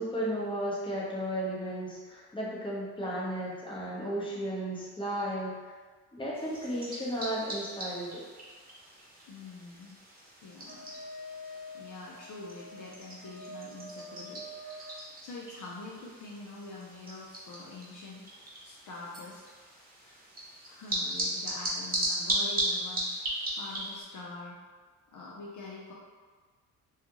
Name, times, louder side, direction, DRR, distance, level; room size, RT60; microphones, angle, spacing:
voice 1, 0.0-5.7 6.1-8.3, equal, 15° left, -6 dB, 0.9 m, -34 dB
sound 1, 6.3-24.0, right 1 dB, 25° right, 0.9 m, -37 dB
voice 2, 9.3-10.0 10.4-10.9 11.7-18.2 18.6-19.4 20.0-20.2 20.6-24.6 25.1-25.9, left 3 dB, 60° left, -4 dB, 0.6 m, -45 dB
Wind instrument woodwind instrument, 10.7-15.1, equal, 40° left, 1.3 m, -46 dB
2.4 x 2.3 x 2.9 m, 1.5 s
supercardioid pair, 70°, 35 cm